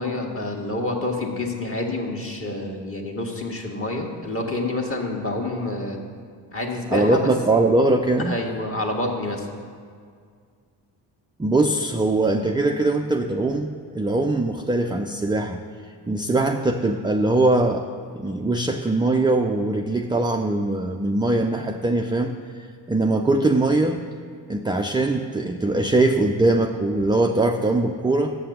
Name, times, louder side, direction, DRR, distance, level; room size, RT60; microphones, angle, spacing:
voice 1, 0.0-6.0 6.5-7.3 8.2-9.5, left 2 dB, 30° left, 1 dB, 1.5 m, -28 dB
voice 2, 6.9-8.3 11.4-15.6 16.1-17.9 18.1-22.3 22.9-24.0 24.5-28.4, right 2 dB, 10° right, 4 dB, 0.3 m, -21 dB
6.9 x 5.8 x 7.3 m, 2.1 s
supercardioid pair, 60°, 47 cm